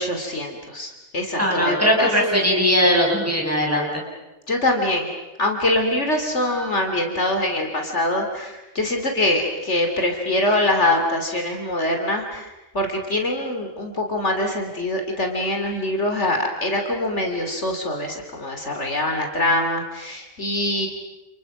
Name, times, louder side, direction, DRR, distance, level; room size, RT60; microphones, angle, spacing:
voice 1, 0.0-2.1 4.5-5.1 5.4-20.9, left 1 dB, 55° left, 3 dB, 3.3 m, -24 dB
voice 2, 1.4-3.9, equal, 10° right, -1 dB, 6.6 m, -19 dB
29.5 x 29.5 x 6.0 m, 1.0 s
omnidirectional pair, 1.4 m